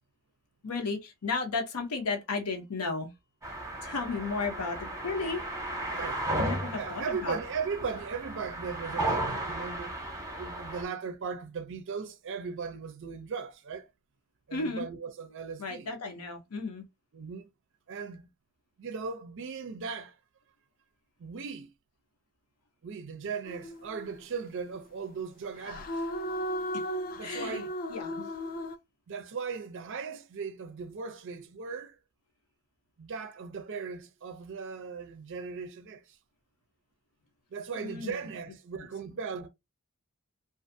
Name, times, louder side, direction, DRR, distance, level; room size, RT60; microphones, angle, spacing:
voice 1, 0.6-3.1 3.8-5.4 6.4-7.4 14.5-14.9 15.6-16.8 27.2-28.3 37.8-38.2 38.8-38.9, left 4 dB, 80° left, 0.7 m, -34 dB
sound 1, 3.4-10.8, right 1 dB, 15° right, 0.7 m, -35 dB
voice 2, 5.9-6.3 6.7-10.0 10.4-13.9 14.5-15.9 17.1-17.5 17.9-18.3 18.8-20.2 21.2-21.7 22.8-26.0 27.2-27.8 29.1-32.0 33.0-36.2 37.5-39.5, right 5 dB, 60° right, 0.5 m, -38 dB
sound 2, 23.5-24.1 25.6-28.8, equal, 40° left, 0.4 m, -35 dB
2.5 x 2.4 x 2.6 m
head